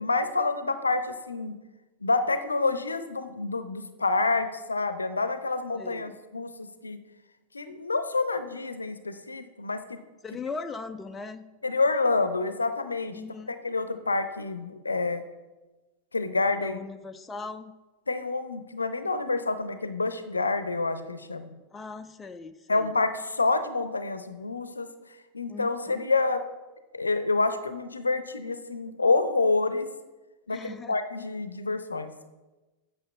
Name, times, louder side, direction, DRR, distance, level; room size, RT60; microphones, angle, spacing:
voice 1, 0.0-1.6 2.0-7.0 7.5-9.8 11.6-13.2 13.5-15.2 16.1-16.8 18.1-21.5 22.7-24.9 25.3-26.4 26.9-29.9 30.5-32.1, left 3 dB, 80° left, 11 dB, 0.6 m, -28 dB
voice 2, 5.7-6.2 10.2-11.5 13.1-13.6 16.6-17.8 21.7-23.0 25.5-26.0 30.5-31.0, left 4 dB, 15° left, 9 dB, 0.5 m, -39 dB
8.6 x 6.4 x 6.2 m, 1.2 s
figure-of-eight pair, 90°, 0 cm